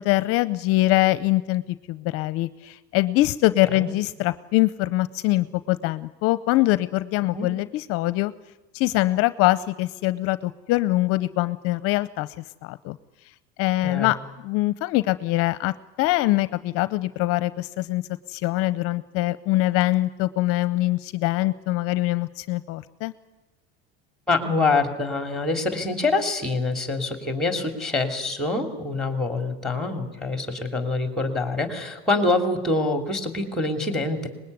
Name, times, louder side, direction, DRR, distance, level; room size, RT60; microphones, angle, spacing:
voice 1, 0.0-1.6 1.9-8.3 8.7-12.3 12.6-13.0 13.6-14.2 14.4-18.0 18.3-23.1, left 18 dB, 50° left, 15 dB, 0.8 m, -23 dB
voice 2, 13.8-14.1 24.3-34.3, left 3 dB, ahead, 6 dB, 3.0 m, -25 dB
24.0 x 20.5 x 9.5 m, 1.1 s
cardioid pair, 155°, 30 cm